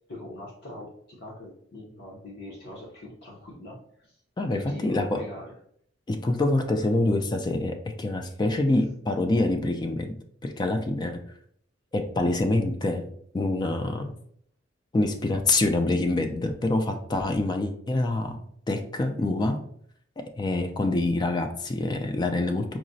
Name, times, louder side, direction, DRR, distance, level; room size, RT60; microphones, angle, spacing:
voice 1, 0.0-4.2 4.5-5.5 8.2-8.3, left 1 dB, 60° left, -3 dB, 0.7 m, -43 dB
voice 2, 4.4-5.2 6.1-10.1 10.4-11.2 11.9-14.1 14.9-18.4 18.7-19.6 20.2-22.8, left 2 dB, 25° left, 6 dB, 0.3 m, -26 dB
4.7 x 2.0 x 2.6 m, 0.65 s
head